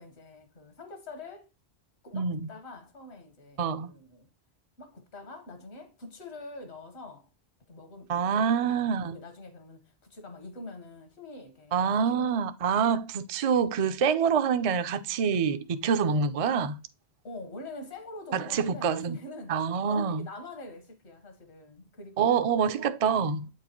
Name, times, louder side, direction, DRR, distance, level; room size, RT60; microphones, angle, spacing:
voice 1, 0.0-1.5 2.0-4.3 4.8-7.3 7.7-12.5 17.2-19.6 19.8-22.3, left 2 dB, 80° left, 1.6 m, -45 dB
voice 2, 2.1-2.5 3.6-3.9 8.1-9.2 11.7-16.8 18.3-19.2 19.5-20.3 22.2-23.5, right 6 dB, 55° right, 0.4 m, -26 dB
8.3 x 4.6 x 3.0 m
omnidirectional pair, 1.1 m